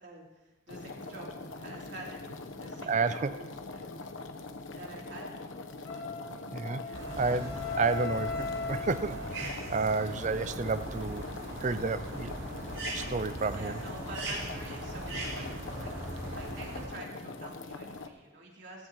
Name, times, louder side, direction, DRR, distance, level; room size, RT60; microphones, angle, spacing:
voice 1, 0.0-4.1 4.7-5.3 13.6-15.9 16.3-18.9, right 2 dB, 60° right, -3 dB, 3.4 m, -47 dB
sound 1, 0.7-18.1, left 3 dB, 85° left, 1.0 m, -43 dB
voice 2, 2.9-3.4 6.5-11.3 11.6-12.3 12.9-13.8, right 4 dB, 40° right, 13 dB, 0.5 m, -31 dB
Wind instrument woodwind instrument, 5.8-9.8, left 4 dB, 60° left, 2.5 m, -38 dB
sound 2, 6.9-16.9, right 1 dB, 85° right, 4.8 m, -40 dB
17.5 x 15.5 x 3.1 m, 1.0 s
head